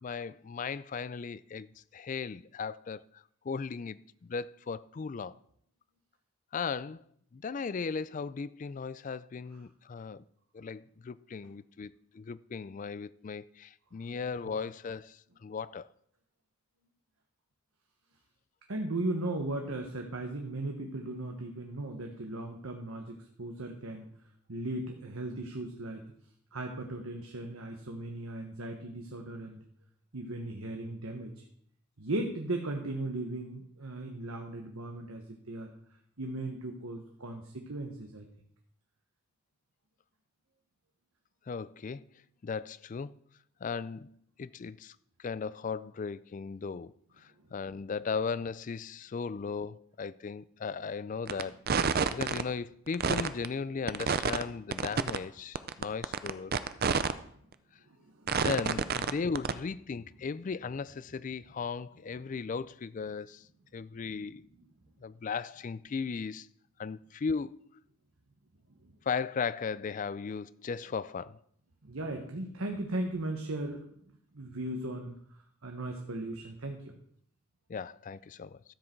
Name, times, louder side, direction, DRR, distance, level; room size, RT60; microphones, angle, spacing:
voice 1, 0.0-5.4 6.5-7.0 7.3-10.2 10.5-15.9 41.5-42.1 42.4-43.1 43.6-51.6 52.1-56.6 58.3-63.5 63.7-64.5 65.0-66.5 66.8-67.7 69.1-71.4 77.7-78.6, left 5 dB, 35° left, 0.3 m, -37 dB
voice 2, 18.7-24.1 24.5-26.1 26.5-29.6 30.1-31.4 32.0-35.7 36.2-38.2 58.0-58.4 68.8-68.9 71.8-73.8 74.3-75.1 75.6-76.9, right 2 dB, 80° right, 1.3 m, -37 dB
sound 1, 51.3-51.4 51.7-52.4 52.9-53.5 53.9-54.4 54.7-55.2 55.6-57.1 57.5-57.6 58.3-59.1 59.4-59.5, right 5 dB, 45° right, 0.5 m, -28 dB
13.5 x 7.7 x 4.5 m
head